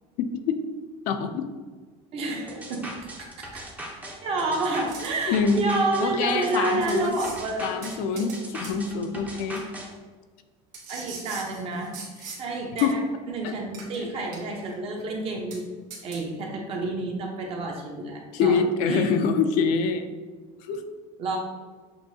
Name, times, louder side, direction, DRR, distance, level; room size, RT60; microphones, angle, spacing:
voice 1, 0.2-0.6 1.1-1.5 5.3-5.6 6.0-7.2 7.6-9.6 12.8-13.0 13.4-13.5 18.3-20.1 20.7-20.9, left 5 dB, 60° left, 8 dB, 0.4 m, -25 dB
voice 2, 2.1-2.9 3.2-3.6 4.2-7.8 10.9-12.0 12.4-13.0 13.3-15.6 16.0-19.1 21.2-21.4, right 2 dB, 40° right, 0 dB, 0.9 m, -29 dB
sound 1, 2.5-9.9, right 1 dB, 10° right, 0.6 m, -39 dB
sound 2, 4.9-5.2 6.3-6.4 6.9-7.4 7.8-8.4 8.6-8.8 9.5-9.6 10.7-12.4 12.8-12.9 13.7-14.0 14.3-14.7 15.0-15.1 15.5-15.6 15.9-16.2, right 4 dB, 70° right, 1.1 m, -41 dB
7.0 x 2.7 x 2.7 m, 1.4 s
cardioid pair, 155°, 15 cm